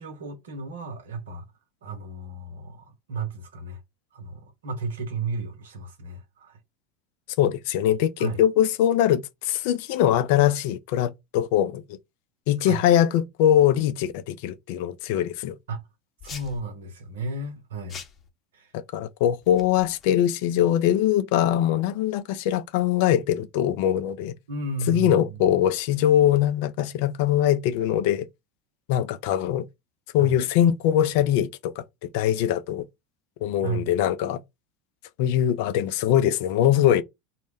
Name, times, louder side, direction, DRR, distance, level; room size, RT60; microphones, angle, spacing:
voice 1, 0.0-1.5 1.8-3.8 4.1-6.6 8.2-8.4 12.6-12.8 15.7-15.8 16.2-18.0 18.5-18.7 24.5-25.4 30.2-30.4 33.6-33.9, right 3 dB, 75° right, 0.7 m, -33 dB
voice 2, 7.4-11.8 12.5-15.5 18.7-24.3 24.9-28.3 28.9-29.7 30.1-31.7 32.0-32.9 33.4-34.4 35.2-37.0, left 11 dB, 65° left, 0.4 m, -22 dB
sound 1, 16.2-16.6 17.9-18.3 19.4-20.1, left 6 dB, 35° left, 0.7 m, -42 dB
2.1 x 2.1 x 3.3 m
hypercardioid pair, 80°, 0 cm